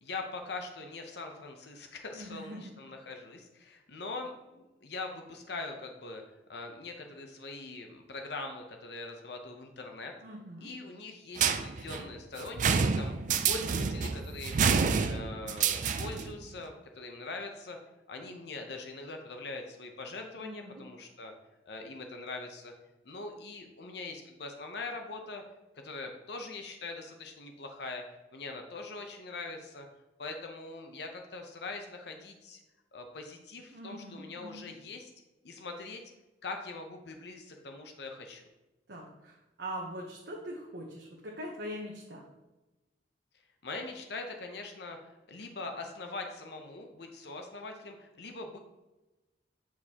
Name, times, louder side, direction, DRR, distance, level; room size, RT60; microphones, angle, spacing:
voice 1, 0.0-10.1 10.6-13.1 13.4-14.7 15.0-17.8 18.1-21.3 21.7-22.7 23.0-25.4 25.8-28.0 28.3-29.9 30.2-32.6 32.9-35.1 35.4-36.0 36.4-38.4 43.6-48.6, left 3 dB, 65° left, 4 dB, 0.7 m, -42 dB
voice 2, 2.1-2.7 10.2-10.7 20.4-20.8 33.7-34.7 38.9-42.2, equal, 65° right, -2 dB, 0.9 m, -42 dB
sound 1, 11.4-16.3, right 6 dB, 45° right, 0.4 m, -28 dB
8.3 x 4.7 x 2.9 m, 1.0 s
head